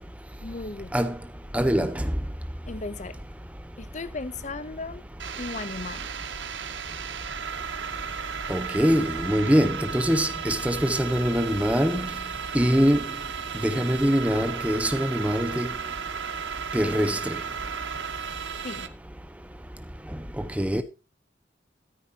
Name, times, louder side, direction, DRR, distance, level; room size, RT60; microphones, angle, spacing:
voice 1, 0.4-0.9 2.7-3.2 3.8-5.0 5.4-6.1 18.6-18.9, left 3 dB, 40° left, 0.7 m, -36 dB
voice 2, 1.5-1.9 8.5-12.1 12.5-13.0 13.6-15.7 16.7-17.2 20.6-20.8, equal, 10° right, 1.2 m, -23 dB
sound 1, 5.2-18.9, right 7 dB, 90° right, 1.0 m, -34 dB
13.5 x 9.6 x 2.9 m
head